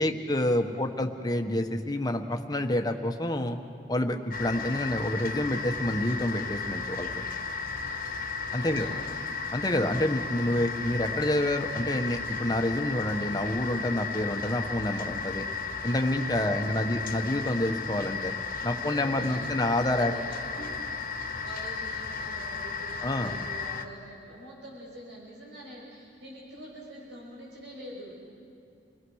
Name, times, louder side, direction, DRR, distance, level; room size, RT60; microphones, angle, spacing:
voice 1, 0.0-3.6 3.9-7.1 8.5-8.9 9.5-15.4 15.8-18.3 18.6-20.1 23.0-23.3, left 1 dB, 20° left, 4 dB, 1.3 m, -28 dB
voice 2, 0.6-1.2 8.6-9.0 16.4-17.1 18.6-20.7 21.4-28.2, right 1 dB, 75° right, -4 dB, 6.5 m, -46 dB
sound 1, 4.3-23.8, left 4 dB, 50° left, 1.4 m, -34 dB
29.0 x 20.5 x 6.4 m, 2.6 s
head